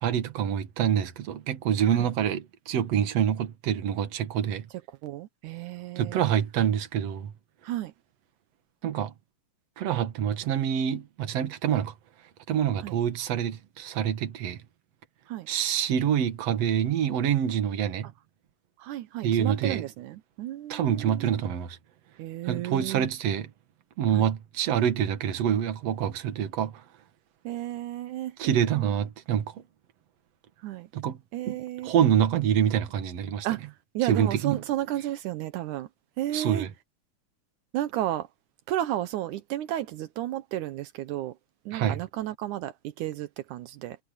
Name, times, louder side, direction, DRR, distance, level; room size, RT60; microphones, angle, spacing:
voice 1, 0.0-4.7 6.0-7.3 8.8-9.1 9.8-11.9 12.5-14.6 15.5-18.1 19.2-19.9 20.7-21.8 22.4-23.5 24.0-26.8 28.4-29.6 30.9-31.2 31.5-31.6 31.8-33.5 34.0-34.6 36.3-36.7 41.7-42.0, right 9 dB, 60° right, 2.5 m, -26 dB
voice 2, 5.0-6.2 7.6-7.9 12.8-13.0 15.3-15.5 18.8-21.4 22.2-23.1 24.1-24.3 27.4-28.9 30.6-30.9 31.3-31.9 33.4-35.9 36.2-36.7 37.7-38.3 38.7-41.4 41.7-44.0, right 13 dB, 80° right, 2.3 m, -33 dB
omnidirectional pair, 3.5 m